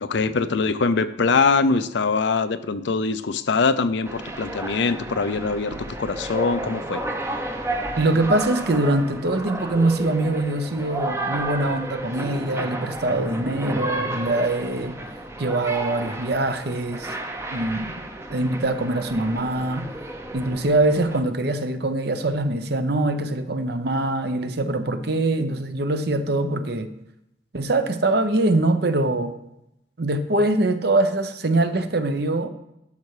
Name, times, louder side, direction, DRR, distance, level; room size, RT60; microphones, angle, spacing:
voice 1, 0.0-7.0, left 4 dB, 65° left, 12 dB, 0.5 m, -23 dB
sound 1, 4.0-21.2, right 1 dB, 15° right, 0.7 m, -32 dB
voice 2, 8.0-15.0 15.4-17.2 17.5-17.9 18.3-19.9 20.3-26.9 27.5-29.3 30.0-32.5, right 2 dB, 55° right, 9 dB, 0.8 m, -23 dB
12.0 x 5.6 x 4.9 m, 0.83 s
head